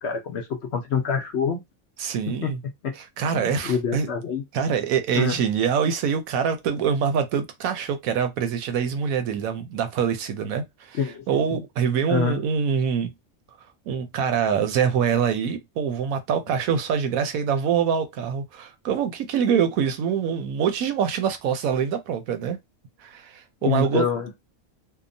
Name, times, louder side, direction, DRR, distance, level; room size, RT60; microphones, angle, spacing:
voice 1, 0.0-1.6 2.3-2.5 2.8-2.9 3.3-4.4 5.1-5.4 10.9-11.6 12.1-12.4 23.6-24.4, left 6 dB, 60° left, 0.7 m, -26 dB
voice 2, 2.0-2.6 3.2-4.1 4.5-11.0 11.3-13.1 13.9-22.6 23.0-24.0, right 7 dB, 75° right, 1.0 m, -24 dB
2.8 x 2.1 x 2.6 m
omnidirectional pair, 1.5 m